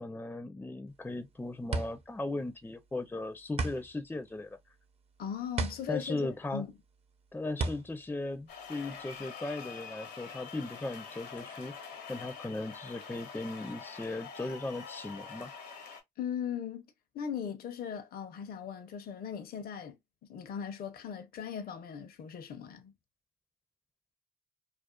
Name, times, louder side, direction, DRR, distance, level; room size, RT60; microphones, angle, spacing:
voice 1, 0.0-4.6 5.9-6.6 7.3-11.7 12.1-15.5, left 2 dB, 10° left, 0.4 m, -37 dB
sound 1, 0.9-9.2, right 3 dB, 35° right, 0.6 m, -37 dB
voice 2, 5.2-6.7 16.2-16.9 17.1-20.0 20.3-22.9, left 8 dB, 60° left, 0.6 m, -38 dB
sound 2, 8.5-16.0, left 6 dB, 80° left, 0.9 m, -46 dB
2.4 x 2.3 x 2.2 m
supercardioid pair, 65°, 17 cm